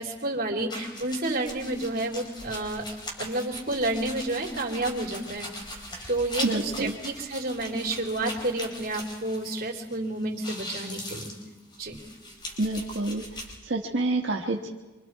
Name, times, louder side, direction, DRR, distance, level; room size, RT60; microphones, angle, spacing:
voice 1, 0.0-2.8 3.2-5.8 6.1-11.3 11.8-12.0, right 2 dB, 55° right, 0 dB, 3.5 m, -30 dB
sound 1, 0.7-10.0 10.2-13.5, left 1 dB, 25° left, 4.6 m, -40 dB
voice 2, 6.4-7.0 12.6-13.2 13.6-14.7, right 2 dB, 85° right, -1 dB, 1.4 m, -27 dB
25.5 x 25.5 x 4.7 m, 1.2 s
head